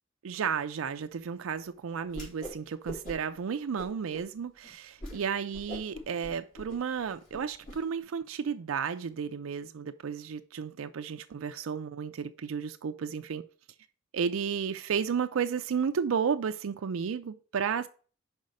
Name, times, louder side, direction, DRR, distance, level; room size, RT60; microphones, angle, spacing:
voice 1, 0.2-13.4 14.1-17.9, right 6 dB, 90° right, 0.4 m, -33 dB
Whoosh swoosh swish, 2.1-2.6 2.8-3.4 3.8-4.2 4.6-4.7 5.0-5.2 5.5-7.8, equal, 40° left, 3.8 m, -42 dB
5.3 x 4.9 x 6.3 m
head